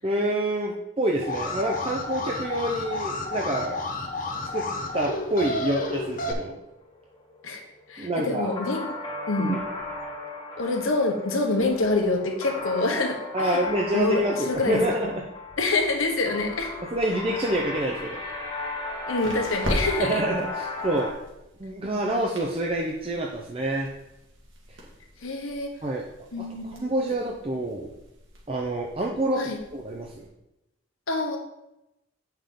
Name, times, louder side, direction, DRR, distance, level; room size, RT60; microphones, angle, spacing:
voice 1, 0.0-3.8 4.5-6.6 8.0-8.5 9.4-9.6 13.3-15.3 16.9-18.2 20.0-21.1 21.6-23.9 24.7-24.8 25.8-26.0 26.4-27.9 28.5-30.2, right 1 dB, 30° right, -1 dB, 0.6 m, -27 dB
Alarm, 1.2-6.3, left 2 dB, 40° left, 0.9 m, -31 dB
sound 1, 4.2-21.1, left 3 dB, 25° left, 1.6 m, -36 dB
voice 2, 7.9-8.9 9.3-9.6 10.6-13.6 13.9-14.8 15.6-16.7 19.1-20.2 25.2-25.7 26.3-26.8 29.4-29.6 31.1-31.4, left 2 dB, 85° left, 3 dB, 1.2 m, -26 dB
sound 2, 17.9-30.3, equal, 65° right, 2.0 m, -40 dB
8.5 x 5.6 x 3.8 m, 0.91 s
head